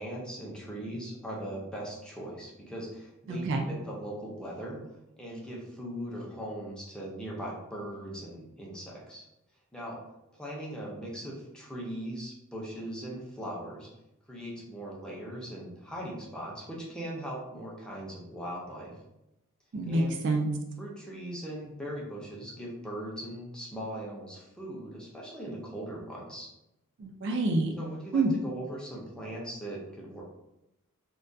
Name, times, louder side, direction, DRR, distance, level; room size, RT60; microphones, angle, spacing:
voice 1, 0.0-4.8 5.2-9.3 9.7-10.0 10.3-13.9 14.3-18.9 19.9-20.1 20.8-26.5 27.8-30.2, right 1 dB, 5° left, -4 dB, 0.5 m, -39 dB
voice 2, 3.3-3.6 19.7-20.5 27.0-27.7 28.1-28.3, right 2 dB, 55° right, 3 dB, 0.3 m, -27 dB
2.2 x 2.2 x 2.5 m, 0.90 s
head